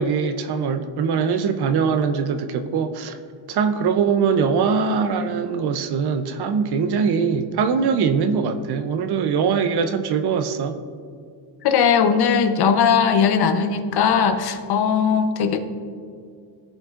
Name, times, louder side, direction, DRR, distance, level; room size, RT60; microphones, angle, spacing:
voice 1, 0.0-3.2 3.5-10.8, right 6 dB, 55° right, 8 dB, 0.6 m, -22 dB
voice 2, 11.6-15.6, left 6 dB, 55° left, 8 dB, 0.8 m, -19 dB
15.0 x 5.4 x 2.4 m, 2.3 s
cardioid pair, 130°, 46 cm